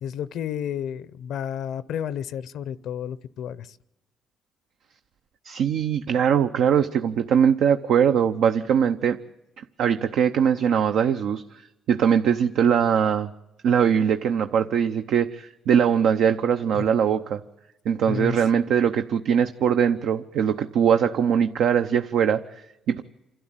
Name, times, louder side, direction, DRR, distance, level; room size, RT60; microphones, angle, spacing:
voice 1, 0.0-3.8 16.7-16.8 18.1-18.4, left 9 dB, 80° left, 18 dB, 0.6 m, -31 dB
voice 2, 5.4-9.2 9.6-13.3 13.6-17.4 17.9-23.0, right 8 dB, 80° right, 8 dB, 0.7 m, -21 dB
27.5 x 12.5 x 8.9 m, 0.97 s
cardioid pair, 90°, 0 cm